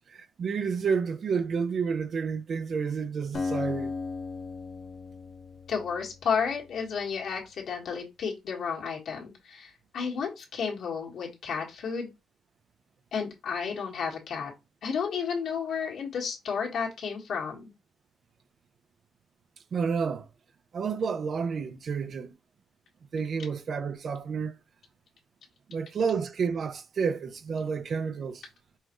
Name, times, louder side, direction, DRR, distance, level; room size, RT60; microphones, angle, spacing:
voice 1, 0.1-3.9 19.7-20.2 20.7-22.3 23.1-24.5 25.7-28.4, right 6 dB, 50° right, 0.6 m, -30 dB
Acoustic guitar, 3.3-6.9, left 4 dB, 45° left, 1.0 m, -36 dB
voice 2, 5.7-12.1 13.1-14.5 14.8-17.7, left 6 dB, 65° left, 1.6 m, -32 dB
5.6 x 2.4 x 3.0 m
cardioid pair, 90°, 0 cm